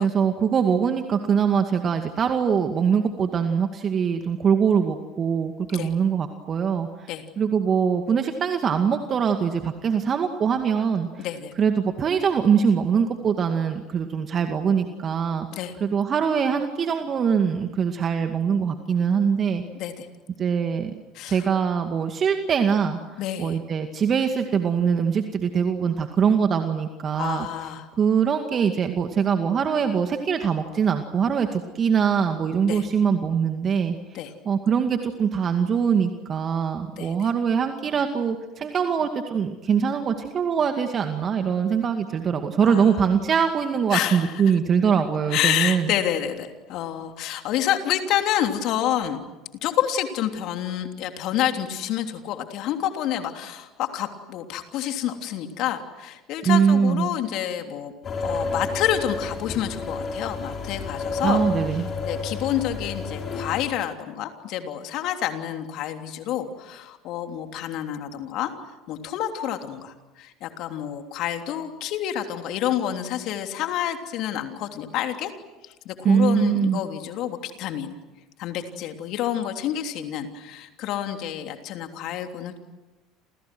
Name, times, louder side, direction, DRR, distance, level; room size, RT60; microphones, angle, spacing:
voice 1, 0.0-7.1 7.4-11.3 11.6-15.5 15.8-19.6 20.4-20.9 21.3-23.0 23.4-27.5 28.0-34.0 34.5-45.9 56.4-57.1 61.2-61.9 76.0-76.8, right 7 dB, 40° right, 6 dB, 2.2 m, -23 dB
voice 2, 11.2-11.5 15.5-15.7 19.7-20.1 21.1-21.4 23.2-23.6 27.2-27.9 32.6-32.8 34.1-34.3 37.0-37.3 42.7-42.9 43.9-44.5 45.3-49.2 49.6-57.9 58.2-61.4 62.0-68.5 68.9-75.3 75.6-77.9 78.4-82.6, left 11 dB, 60° left, 5 dB, 3.2 m, -28 dB
sound 1, 58.0-63.6, left 3 dB, 40° left, 6.6 m, -30 dB
30.0 x 28.5 x 6.2 m, 1.1 s
hypercardioid pair, 75°, 0 cm